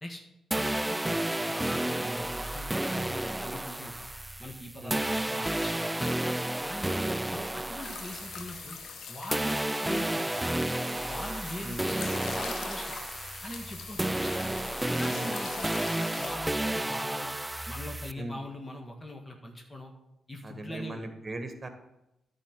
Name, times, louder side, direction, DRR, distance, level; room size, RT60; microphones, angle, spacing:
voice 1, 0.5-2.7 3.0-4.1 4.4-6.1 6.6-7.0 7.3-8.8 9.1-10.5 11.0-13.0 13.4-14.5 14.9-17.4 17.7-19.9 20.3-21.0, left 1 dB, 25° left, 2 dB, 1.6 m, -42 dB
sound 1, 0.5-9.0 9.3-18.1, right 1 dB, 10° right, 0.4 m, -32 dB
sound 2, 7.8-16.4, left 6 dB, 70° left, 0.9 m, -43 dB
voice 2, 11.6-11.9 15.1-15.4 18.2-18.4 20.4-21.7, right 2 dB, 30° right, 7 dB, 1.7 m, -39 dB
10.0 x 4.2 x 7.4 m, 0.89 s
hypercardioid pair, 50°, 0 cm